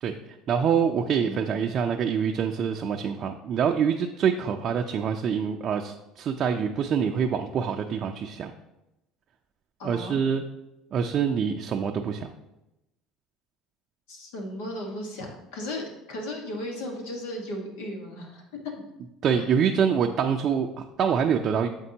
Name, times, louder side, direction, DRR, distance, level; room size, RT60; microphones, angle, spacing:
voice 1, 0.5-8.5 9.8-10.4 10.9-12.3 19.2-21.7, right 7 dB, 50° right, 3 dB, 0.4 m, -25 dB
voice 2, 1.2-1.5 9.8-10.2 14.1-18.7 19.4-19.5, left 1 dB, 80° left, 1 dB, 1.3 m, -36 dB
7.3 x 5.3 x 2.8 m, 0.92 s
supercardioid pair, 80°, 0 cm